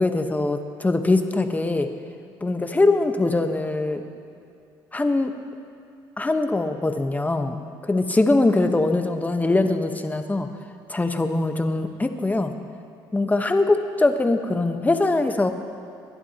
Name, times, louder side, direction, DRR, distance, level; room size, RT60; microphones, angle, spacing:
voice 1, 0.0-1.9 2.4-4.0 4.9-5.3 6.2-10.5 10.9-12.5 13.1-15.5, left 2 dB, 15° left, 7 dB, 1.1 m, -22 dB
23.0 x 11.0 x 2.9 m, 2.6 s
supercardioid pair, 70°, 10 cm